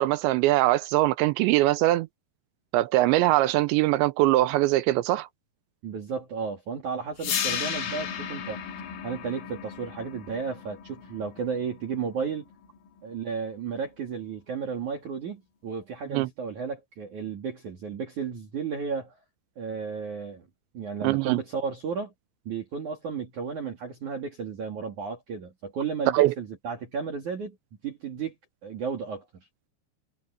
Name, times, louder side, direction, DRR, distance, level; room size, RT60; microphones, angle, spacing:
voice 1, 0.0-2.1 2.7-5.3 16.1-16.3 21.0-21.4 26.1-26.3, right 16 dB, 80° right, 2.7 m, -22 dB
voice 2, 5.8-8.6 9.0-12.4 13.0-19.2 19.6-20.4 20.7-22.1 22.4-27.6 27.8-28.3 28.6-29.2, right 6 dB, 45° right, 3.1 m, -33 dB
sound 1, 7.2-13.2, left 8 dB, 80° left, 6.0 m, -35 dB
omnidirectional pair, 5.6 m